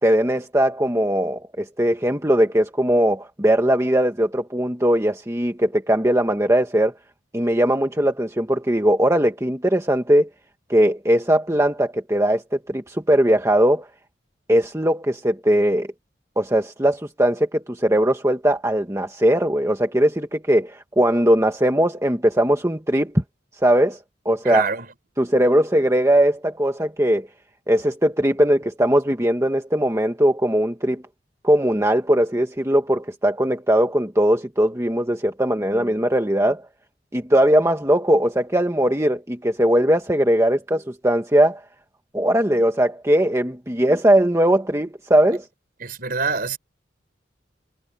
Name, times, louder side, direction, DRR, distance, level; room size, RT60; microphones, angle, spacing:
voice 1, 0.0-6.9 7.3-10.3 10.7-13.9 14.5-15.9 16.3-23.2 23.6-24.0 24.2-24.7 25.2-27.3 27.7-31.0 31.4-36.6 37.1-41.6 42.1-45.4, right 1 dB, 15° right, 1.6 m, -19 dB
voice 2, 24.4-24.9 45.8-46.6, right 4 dB, 50° right, 4.8 m, -25 dB
head